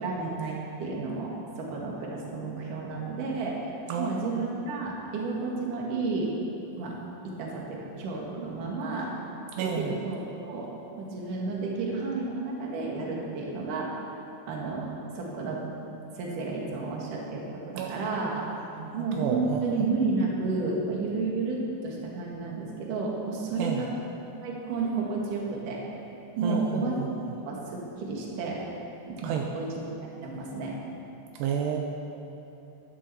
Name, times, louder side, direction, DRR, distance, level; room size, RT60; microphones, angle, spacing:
voice 1, 0.0-6.3 6.8-7.0 7.2-9.1 9.6-10.7 11.0-14.0 14.5-15.6 16.2-18.5 18.9-23.9 24.4-25.8 26.4-27.0 27.5-28.6 29.1-29.9 30.2-30.8, right 3 dB, 55° right, -2 dB, 2.7 m, -31 dB
voice 2, 3.9-4.4 9.5-10.0 17.7-18.2 18.8-19.6 23.6-23.8 26.4-27.1 29.2-29.5 31.3-31.8, right 7 dB, 85° right, 1 dB, 2.4 m, -31 dB
11.5 x 11.0 x 7.0 m, 3.0 s
omnidirectional pair, 5.8 m